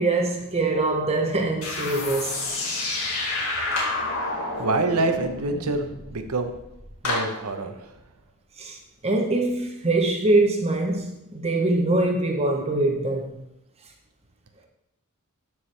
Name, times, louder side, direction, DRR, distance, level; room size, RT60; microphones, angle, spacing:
voice 1, 0.0-2.5 8.6-8.8 9.0-13.4, right 2 dB, 30° right, 0.9 m, -23 dB
sound 1, 1.6-6.9, left 2 dB, 70° left, 2.0 m, -30 dB
Clapping, 3.7-4.1 7.0-7.5, left 2 dB, 90° left, 2.6 m, -28 dB
voice 2, 4.6-6.5 7.0-7.9, right 2 dB, 75° right, 0.9 m, -26 dB
13.0 x 4.7 x 3.3 m
head